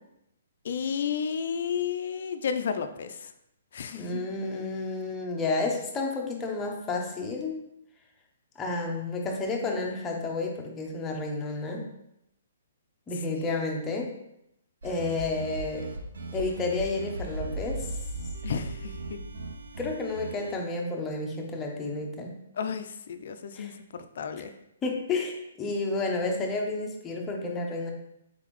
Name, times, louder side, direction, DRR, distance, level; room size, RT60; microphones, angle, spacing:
voice 1, 0.6-3.3 3.7-4.2 18.4-19.2 22.6-23.7 24.2-24.5, left 7 dB, 60° left, 9 dB, 0.4 m, -32 dB
voice 2, 3.9-7.5 8.6-11.8 13.1-14.1 14.8-15.9 16.3-17.9 19.8-22.4 23.6-23.7 24.8-27.9, left 3 dB, 15° left, 1 dB, 0.6 m, -31 dB
sound 1, 14.8-20.6, right 2 dB, 85° right, 0.5 m, -37 dB
4.1 x 3.8 x 3.1 m, 0.81 s
hypercardioid pair, 160°, 0 cm